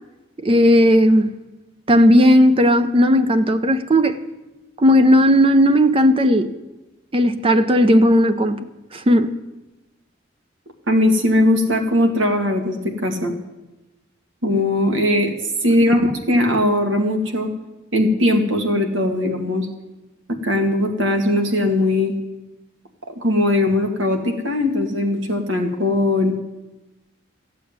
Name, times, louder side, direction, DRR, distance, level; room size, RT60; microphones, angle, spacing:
voice 1, 0.4-1.3 1.9-4.2 4.8-6.5 7.1-8.6 8.9-9.4, equal, 30° right, 0.6 m, -15 dB
voice 2, 10.9-13.3 14.4-17.5 17.9-19.7 20.3-22.1 23.2-26.3, left 1 dB, 75° right, 2.0 m, -19 dB
14.0 x 8.4 x 9.4 m
head